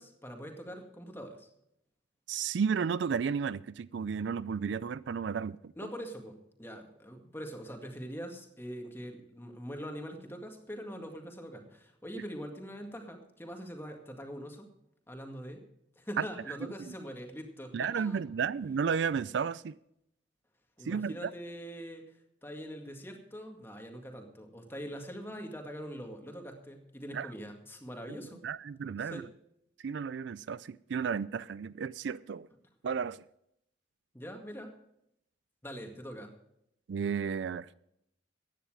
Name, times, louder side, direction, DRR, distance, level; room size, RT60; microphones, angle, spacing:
voice 1, 0.0-1.5 5.8-14.7 15.1-15.6 16.0-18.2 20.8-22.0 22.4-28.4 29.0-29.3 34.1-34.8 35.6-36.3, equal, 10° left, 2.0 m, -43 dB
voice 2, 2.3-5.7 16.2-16.3 17.7-19.7 20.9-21.3 27.1-27.3 28.4-29.2 29.8-32.5 32.8-33.2 36.9-37.7, right 6 dB, 65° right, 0.4 m, -33 dB
15.0 x 10.0 x 4.9 m
head